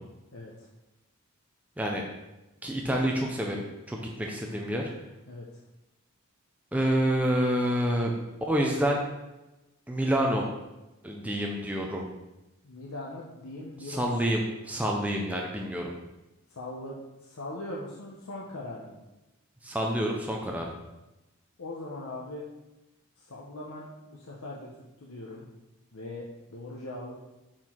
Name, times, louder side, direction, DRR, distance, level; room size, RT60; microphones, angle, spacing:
voice 1, 0.3-0.7 5.3-5.5 12.6-14.4 16.5-19.0 21.6-22.4 23.2-24.7 25.0-25.4 25.9-27.1, left 2 dB, 70° left, -3 dB, 0.9 m, -40 dB
voice 2, 2.6-3.6 3.9-4.9 6.7-8.1 8.5-9.0 9.9-10.5 11.0-12.1 13.8-15.9 19.6-20.7, equal, 5° right, -1 dB, 0.6 m, -28 dB
6.0 x 4.4 x 4.4 m, 1.0 s
head